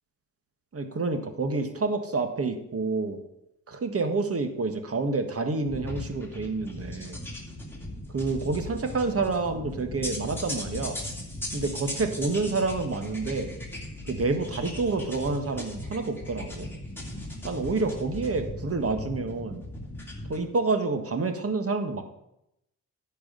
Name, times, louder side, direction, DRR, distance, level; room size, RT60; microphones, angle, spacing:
voice 1, 0.7-3.2 3.7-7.2 8.1-11.0 11.5-13.5 14.1-16.7 17.4-19.6 20.3-22.0, right 3 dB, 40° right, 7 dB, 1.6 m, -28 dB
sound 1, 5.7-20.4, left 1 dB, 5° left, 2.7 m, -38 dB
10.5 x 4.8 x 7.8 m, 0.81 s
cardioid pair, 80°, 37 cm